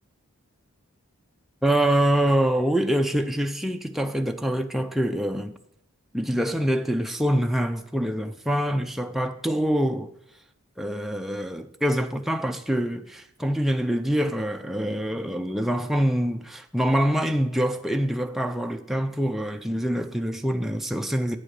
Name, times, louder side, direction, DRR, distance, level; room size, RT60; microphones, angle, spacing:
voice 1, 1.6-5.5 6.1-10.1 10.8-21.4, equal, ahead, 0.4 m, -25 dB
8.5 x 7.8 x 6.4 m
head